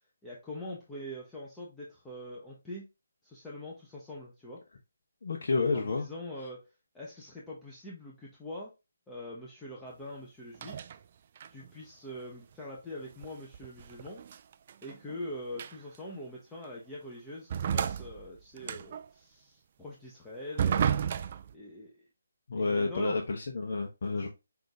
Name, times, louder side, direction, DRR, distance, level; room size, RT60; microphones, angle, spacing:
voice 1, 0.2-2.9 3.2-4.6 5.7-6.6 6.9-8.7 9.1-10.9 11.5-14.2 14.8-21.1 21.5-22.1 22.5-23.2 24.1-24.3, left 1 dB, 5° left, 0.8 m, -43 dB
voice 2, 5.2-6.1 22.5-24.3, left 3 dB, 60° left, 0.9 m, -30 dB
sound 1, 10.5-11.0 11.4-11.7 13.2-15.2 15.6-16.0 16.6-16.7 17.5-19.0 20.6-21.5, right 8 dB, 40° right, 0.4 m, -32 dB
5.8 x 2.6 x 3.4 m
hypercardioid pair, 160°, 0 cm